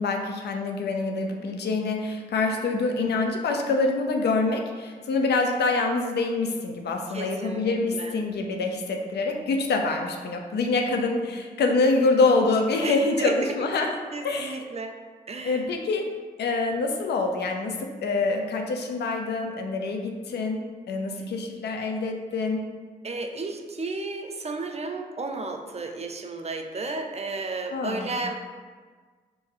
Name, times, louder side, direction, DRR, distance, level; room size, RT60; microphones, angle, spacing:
voice 1, 0.0-14.0 14.2-14.6 15.4-16.1 16.4-22.7 27.7-28.2, left 3 dB, 90° left, 3 dB, 0.5 m, -26 dB
voice 2, 7.1-8.1 12.8-13.5 14.1-14.9 15.3-15.7 23.0-28.4, right 3 dB, 40° right, 4 dB, 0.5 m, -33 dB
3.7 x 2.6 x 4.6 m, 1.5 s
cardioid pair, 50°, 17 cm